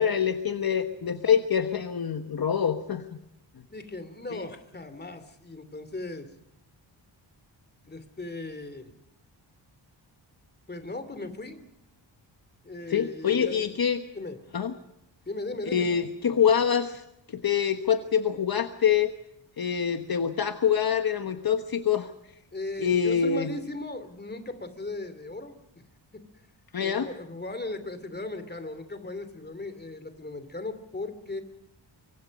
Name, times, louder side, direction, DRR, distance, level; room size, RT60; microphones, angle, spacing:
voice 1, 0.0-3.2 4.3-4.5 12.9-14.0 14.5-14.7 15.7-17.0 17.3-19.1 19.6-22.1 22.8-23.5 26.7-27.1, left 7 dB, 55° left, 7 dB, 1.3 m, -25 dB
voice 2, 3.7-6.3 7.9-8.9 10.7-11.6 12.6-13.8 14.1-14.4 15.3-15.9 22.5-25.6 26.8-31.4, left 2 dB, 20° left, 10 dB, 2.7 m, -37 dB
25.0 x 24.5 x 5.3 m, 0.85 s
wide cardioid pair, 145°, 44 cm